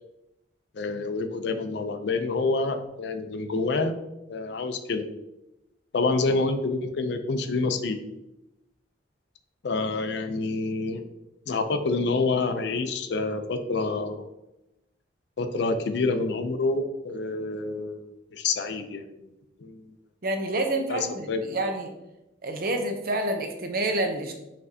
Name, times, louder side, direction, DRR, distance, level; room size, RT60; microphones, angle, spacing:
voice 1, 0.7-3.9 4.3-5.1 5.9-8.0 9.6-11.0 11.5-14.2 15.4-19.3 19.6-19.8 20.9-21.0 21.3-21.4, left 3 dB, 65° left, 8 dB, 0.4 m, -27 dB
voice 2, 20.2-21.9 22.4-24.4, right 2 dB, 50° right, 5 dB, 0.6 m, -28 dB
5.9 x 3.3 x 2.7 m, 0.93 s
head